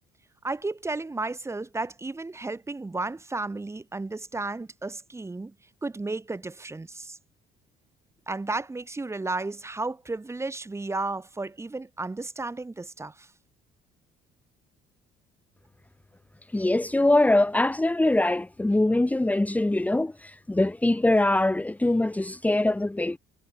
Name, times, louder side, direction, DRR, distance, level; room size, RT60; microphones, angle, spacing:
voice 1, 0.4-5.5 5.8-7.2 8.3-13.3, right 3 dB, 15° right, 3.8 m, -33 dB
voice 2, 16.5-23.2, left 2 dB, 10° left, 2.3 m, -23 dB
cardioid pair, 110°, 17 cm